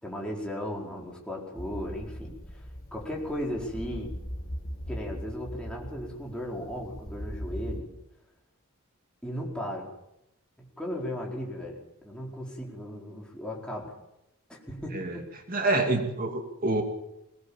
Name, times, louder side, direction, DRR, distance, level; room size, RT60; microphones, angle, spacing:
voice 1, 0.0-2.6 2.9-4.1 4.9-7.9 9.2-9.9 10.6-14.0 14.5-15.3, equal, 5° left, -2 dB, 4.7 m, -36 dB
sound 1, 1.5-7.8, equal, 40° left, 5.5 m, -39 dB
voice 2, 15.5-16.8, right 2 dB, 40° right, 4 dB, 2.5 m, -27 dB
21.5 x 19.0 x 7.2 m, 0.86 s
head